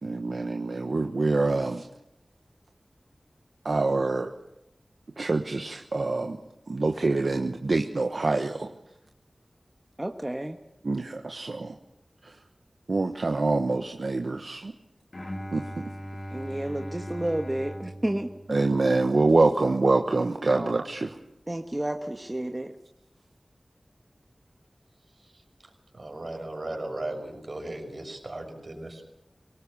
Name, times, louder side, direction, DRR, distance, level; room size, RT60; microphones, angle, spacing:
voice 1, 0.0-1.9 3.6-4.3 5.2-6.4 6.7-8.7 10.8-11.8 12.9-14.7 15.5-15.9 18.5-21.1, right 3 dB, 70° right, 5 dB, 1.2 m, -25 dB
voice 2, 10.0-10.6 16.3-18.3 20.5-20.8 21.5-22.7, right 1 dB, 25° right, 4 dB, 1.4 m, -31 dB
Bowed string instrument, 15.1-19.3, equal, 50° left, 2.5 m, -39 dB
voice 3, 25.9-29.0, right 1 dB, 55° right, 2 dB, 5.9 m, -36 dB
23.5 x 18.5 x 7.2 m, 0.85 s
wide cardioid pair, 55°, 0 cm